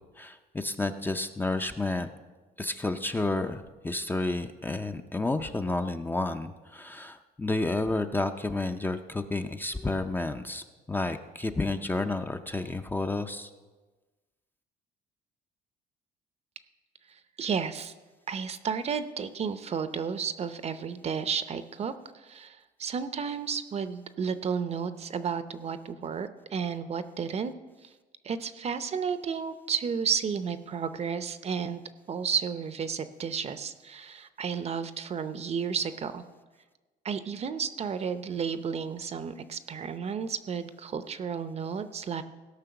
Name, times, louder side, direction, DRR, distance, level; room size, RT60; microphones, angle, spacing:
voice 1, 0.2-2.1 2.6-13.5, left 2 dB, 10° left, 7 dB, 0.6 m, -31 dB
voice 2, 17.4-17.9 18.3-27.5 28.2-31.8 32.1-36.2 37.0-42.2, right 6 dB, 40° right, 11 dB, 0.7 m, -32 dB
16.5 x 5.7 x 6.9 m, 1.2 s
cardioid pair, 110°, 17 cm